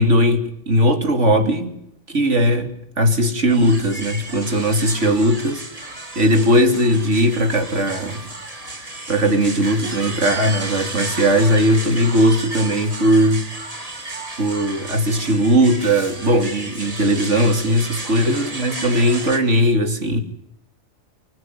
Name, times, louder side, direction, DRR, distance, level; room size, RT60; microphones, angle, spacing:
voice 1, 0.0-1.7 2.1-8.2 8.7-13.4 13.8-13.9 14.4-20.2, equal, 75° right, 3.3 m, -18 dB
sound 1, 3.5-19.4, right 2 dB, 30° right, 2.6 m, -33 dB
25.0 x 15.5 x 9.5 m
omnidirectional pair, 1.3 m